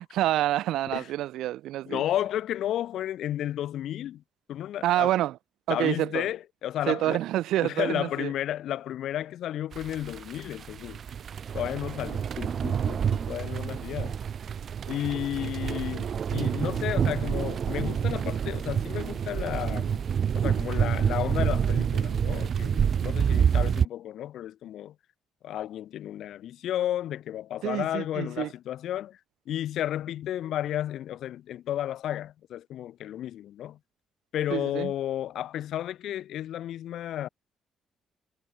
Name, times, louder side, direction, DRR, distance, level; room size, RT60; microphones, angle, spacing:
voice 1, 0.0-2.0 4.8-5.4 5.7-6.3 6.9-8.3 27.6-28.5 34.5-34.9, right 14 dB, 85° right, 5.7 m, -27 dB
voice 2, 1.9-4.2 4.5-5.1 5.7-7.2 7.6-11.0 11.5-14.2 14.9-20.1 20.3-25.0 25.4-29.2 29.5-33.8 34.3-37.3, left 12 dB, 75° left, 3.7 m, -32 dB
sound 1, 9.7-23.9, right 7 dB, 55° right, 0.6 m, -28 dB
cardioid pair, 90°, 0 cm